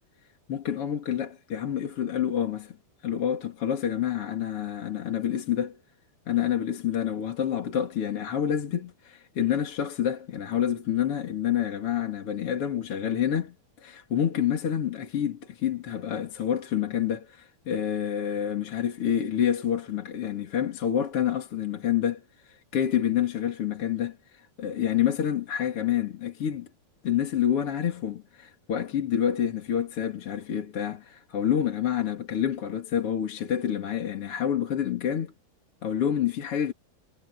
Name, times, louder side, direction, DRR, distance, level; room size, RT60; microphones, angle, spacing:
voice 1, 0.5-2.8 3.0-5.8 6.3-8.9 9.4-26.7 27.0-35.3 35.8-36.7, left 9 dB, 45° left, 2.8 m, -28 dB
omnidirectional pair, 4.3 m